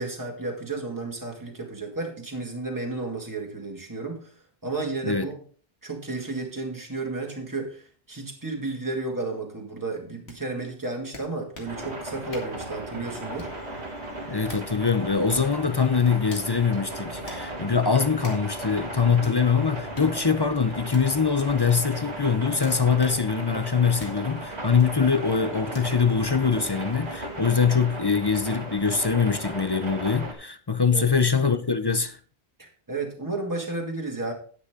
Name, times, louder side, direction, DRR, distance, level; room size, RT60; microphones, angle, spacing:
voice 1, 0.0-4.2 4.6-5.4 5.8-13.5 30.9-31.1 32.6-34.3, right 3 dB, 20° right, 2.1 m, -32 dB
sound 1, 10.3-10.4 11.1-11.8 12.3-12.6 13.4-13.7 14.3-14.7 15.3-15.6 16.3-16.5 17.3-17.5 18.2-18.5 19.2-19.4 19.9-20.1 20.9-21.5 22.6-23.2 24.0-24.2 24.8-25.0 25.7-25.9, left 2 dB, 85° left, 2.4 m, -43 dB
sound 2, 11.7-30.3, right 1 dB, 85° right, 2.4 m, -36 dB
sound 3, 13.1-27.5, left 3 dB, 45° left, 1.4 m, -49 dB
voice 2, 14.3-32.2, left 5 dB, 30° left, 0.5 m, -23 dB
9.8 x 9.8 x 3.7 m
omnidirectional pair, 1.1 m